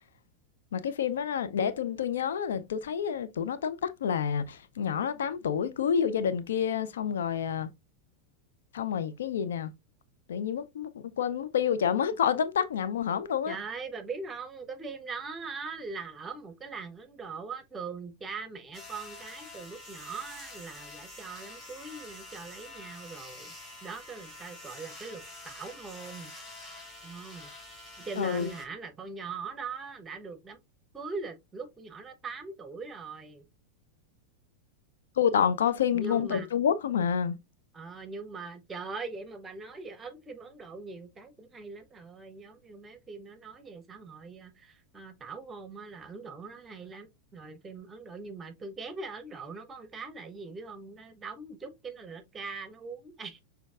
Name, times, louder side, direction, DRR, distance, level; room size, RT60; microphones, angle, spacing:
voice 1, 0.7-7.7 8.7-9.7 10.3-13.6 28.2-28.5 35.2-37.4, left 8 dB, 65° left, 0.4 m, -28 dB
voice 2, 13.5-23.5 23.8-26.3 27.0-27.5 28.0-30.6 30.9-33.4 35.9-36.5 37.7-53.4, right 4 dB, 15° right, 0.9 m, -41 dB
sound 1, 18.7-28.7, left 2 dB, 15° left, 2.0 m, -47 dB
6.2 x 3.3 x 2.4 m
figure-of-eight pair, 90°, 0 cm